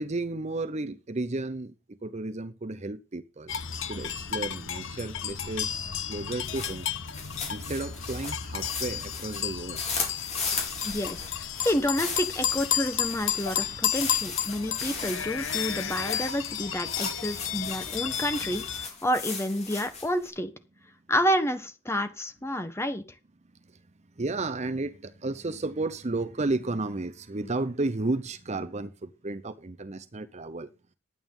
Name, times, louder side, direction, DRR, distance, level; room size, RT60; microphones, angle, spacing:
voice 1, 0.0-3.6 3.9-6.9 7.5-9.8 18.4-18.6 23.6-23.9 24.2-30.7, right 2 dB, 35° right, 0.7 m, -33 dB
sound 1, 3.5-18.9, left 9 dB, 65° left, 1.2 m, -32 dB
sound 2, 6.3-20.3, left 5 dB, 35° left, 4.4 m, -37 dB
voice 2, 10.8-11.2 11.6-20.5 21.1-23.0, equal, 15° left, 1.4 m, -29 dB
11.0 x 9.3 x 5.5 m
head